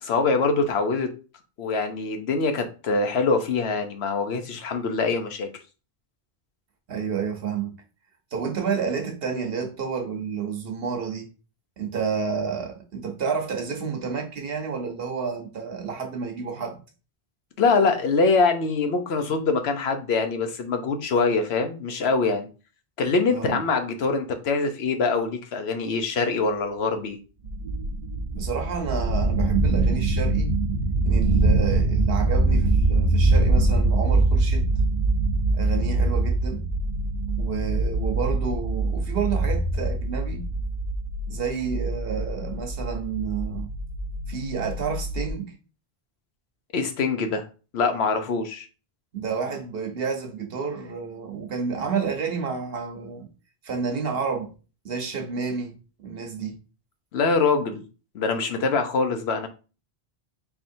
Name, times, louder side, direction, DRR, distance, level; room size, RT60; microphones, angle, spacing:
voice 1, 0.0-1.1 1.6-5.5 17.6-22.5 23.0-27.2 46.7-47.4 47.7-48.7 57.1-57.8 58.1-59.5, left 4 dB, 85° left, 1.0 m, -24 dB
voice 2, 6.9-7.7 8.3-11.3 11.8-16.8 23.3-23.6 28.3-30.6 31.0-34.7 35.5-36.7 37.4-40.5 41.3-43.7 44.3-45.5 49.1-53.3 53.6-54.5 54.8-56.6, right 6 dB, 70° right, 1.1 m, -30 dB
sound 1, 27.4-45.3, right 2 dB, 55° right, 0.7 m, -23 dB
4.3 x 3.5 x 2.6 m
omnidirectional pair, 1.0 m